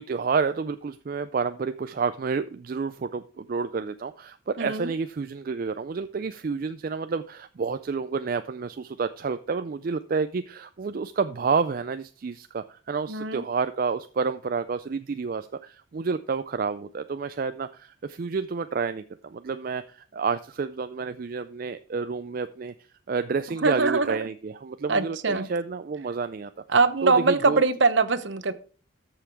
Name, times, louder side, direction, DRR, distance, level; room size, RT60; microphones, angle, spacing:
voice 1, 0.0-22.7 23.1-26.5 27.0-27.6, right 5 dB, 45° right, 11 dB, 0.3 m, -29 dB
voice 2, 4.6-4.9 13.1-13.4 23.6-24.2 24.9-25.5 26.7-28.5, right 3 dB, 60° right, 13 dB, 0.8 m, -22 dB
13.5 x 5.8 x 4.7 m, 0.41 s
head